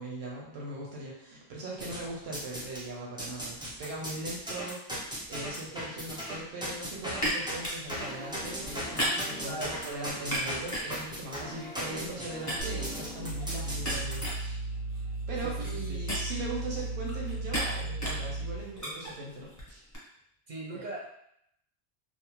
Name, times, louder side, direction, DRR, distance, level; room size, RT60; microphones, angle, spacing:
voice 1, 0.0-14.7 15.3-19.8 20.7-20.9, right 2 dB, 90° right, -3 dB, 0.9 m, -40 dB
sound 1, 1.8-2.8 3.2-14.3, equal, 10° right, 0.3 m, -38 dB
Siemen Orange Bottle, 7.2-12.2 12.5-20.0, equal, 20° left, 0.7 m, -37 dB
voice 2, 9.4-9.9 15.4-16.0 20.5-21.1, right 2 dB, 55° right, -3 dB, 0.6 m, -40 dB
sound 2, 12.6-18.7, right 2 dB, 55° left, 0.6 m, -36 dB
2.7 x 2.0 x 2.9 m, 0.74 s
omnidirectional pair, 1.1 m